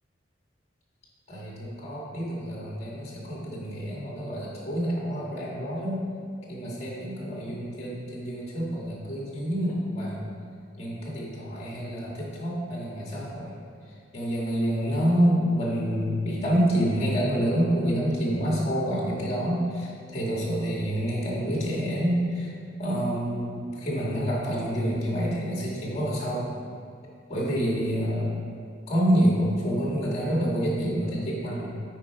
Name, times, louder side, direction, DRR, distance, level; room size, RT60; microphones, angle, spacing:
voice 1, 1.3-6.0 6.5-10.3 10.8-13.6 14.1-22.5 22.8-26.5 27.3-28.4 28.9-31.7, equal, 35° left, -5 dB, 1.9 m, -27 dB
8.8 x 4.6 x 4.7 m, 2.2 s
head